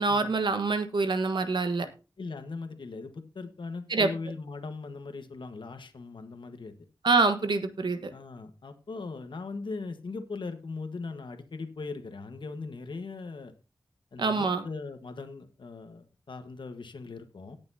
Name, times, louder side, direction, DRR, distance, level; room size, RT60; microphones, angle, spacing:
voice 1, 0.0-1.9 3.9-4.1 7.0-8.1 14.2-14.6, right 3 dB, 70° right, 8 dB, 1.4 m, -25 dB
voice 2, 2.2-6.7 8.1-13.5 14.1-17.6, left 3 dB, 80° left, 7 dB, 1.4 m, -39 dB
18.0 x 7.0 x 2.8 m, 0.31 s
wide cardioid pair, 75°, 8 cm